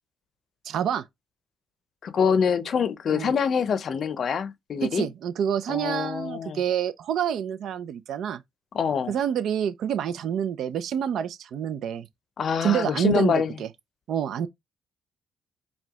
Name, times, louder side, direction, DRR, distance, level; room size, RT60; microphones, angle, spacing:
voice 1, 0.6-1.0 3.1-3.3 4.8-8.4 9.1-12.1 12.6-13.7 14.1-14.5, right 9 dB, 75° right, 0.5 m, -27 dB
voice 2, 2.0-5.1 5.7-6.6 8.7-9.1 12.4-13.5, left 6 dB, 55° left, 0.6 m, -25 dB
4.8 x 2.2 x 3.5 m
cardioid pair, 90°, 0 cm